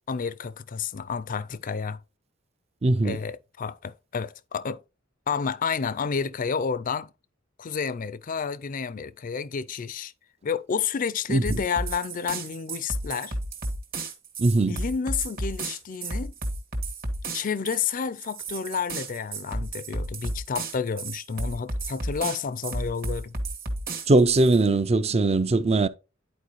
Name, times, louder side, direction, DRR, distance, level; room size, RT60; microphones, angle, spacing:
voice 1, 0.1-2.0 3.0-4.8 5.3-7.1 7.6-10.1 10.4-13.3 14.7-16.3 17.3-23.3, left 6 dB, 45° left, 0.4 m, -30 dB
voice 2, 2.8-3.2 11.3-11.6 14.4-14.8 24.1-25.9, right 2 dB, 30° right, 0.5 m, -20 dB
sound 1, 11.5-24.6, right 2 dB, 50° right, 1.8 m, -33 dB
10.5 x 4.6 x 3.1 m
head